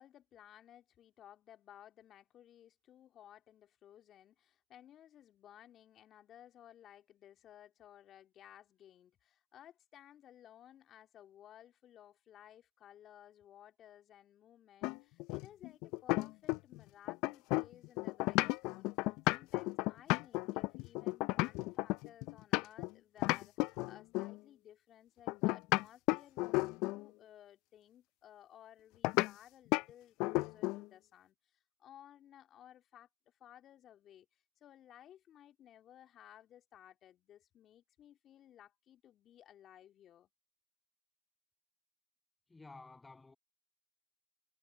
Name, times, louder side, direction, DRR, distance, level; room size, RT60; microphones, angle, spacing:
voice 1, 0.0-40.3, left 11 dB, 40° left, 2.6 m, -59 dB
sound 1, 14.8-16.8 17.1-22.9 23.2-24.4 25.3-27.1 29.0-29.3 29.7-29.9 30.2-30.9, left 23 dB, 55° left, 0.5 m, -33 dB
voice 2, 42.5-43.4, left 3 dB, 15° left, 6.9 m, -53 dB
hypercardioid pair, 90°, 0 cm